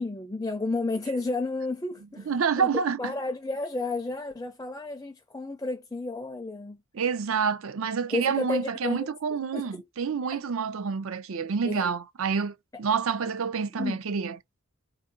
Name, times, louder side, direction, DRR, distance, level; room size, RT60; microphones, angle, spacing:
voice 1, 0.0-2.3 2.6-2.7 3.0-6.8 8.1-9.1 9.5-9.8 10.3-10.4 11.6-11.9 13.2-13.3 13.7-14.0, left 3 dB, 15° left, 0.4 m, -32 dB
voice 2, 2.3-3.1 6.9-14.4, right 6 dB, 75° right, 0.5 m, -28 dB
4.3 x 2.6 x 3.7 m
head